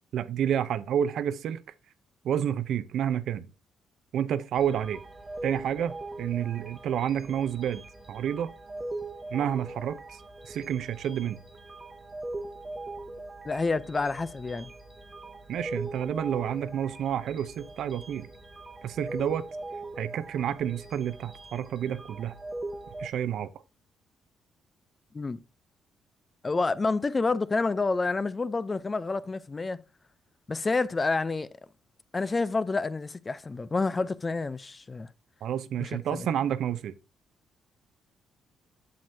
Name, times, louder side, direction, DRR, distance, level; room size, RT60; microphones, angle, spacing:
voice 1, 0.1-1.6 2.2-3.5 4.1-5.0 5.4-8.5 9.3-10.0 10.4-11.4 15.5-18.3 18.8-19.4 20.0-22.3 23.0-23.5 35.4-36.9, right 9 dB, 75° right, 0.6 m, -29 dB
sound 1, 4.5-23.1, right 2 dB, 20° right, 1.0 m, -41 dB
voice 2, 13.4-14.7 25.1-25.4 26.4-29.8 30.5-31.5 32.1-35.1 35.8-36.3, left 3 dB, 25° left, 0.5 m, -28 dB
7.6 x 7.3 x 2.7 m
cardioid pair, 90°, 0 cm